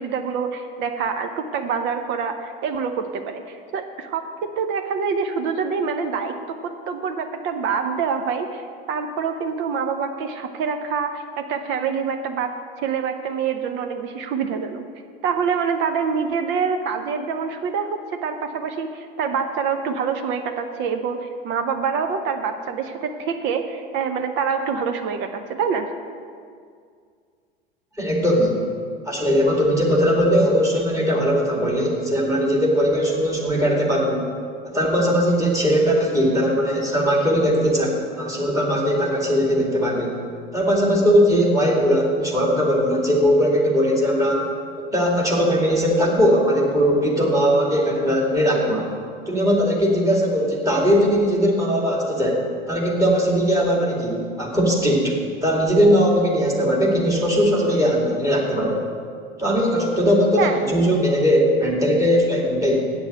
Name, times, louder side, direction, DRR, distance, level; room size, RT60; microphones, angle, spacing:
voice 1, 0.0-14.8 15.2-25.9 60.4-60.6, right 6 dB, 40° right, 7 dB, 0.8 m, -26 dB
voice 2, 28.0-28.6 29.1-34.3 34.6-40.1 40.5-44.5 44.9-48.9 49.3-52.4 52.7-55.1 55.4-58.8 59.4-62.9, equal, 10° right, -2 dB, 2.3 m, -19 dB
8.2 x 7.1 x 7.8 m, 2.1 s
figure-of-eight pair, 75°, 29 cm